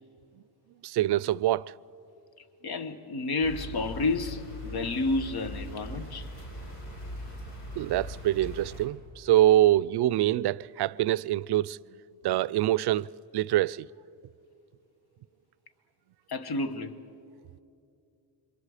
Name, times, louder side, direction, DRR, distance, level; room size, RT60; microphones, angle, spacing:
voice 1, 0.8-1.7 7.8-11.8 12.2-13.1 13.3-13.9, right 14 dB, 65° right, 0.5 m, -25 dB
voice 2, 2.6-6.3 16.3-17.0, left 3 dB, 60° left, 1.3 m, -30 dB
sound 1, 3.4-8.9, equal, 80° left, 4.0 m, -40 dB
27.0 x 23.0 x 5.0 m
cardioid pair, 75°, 43 cm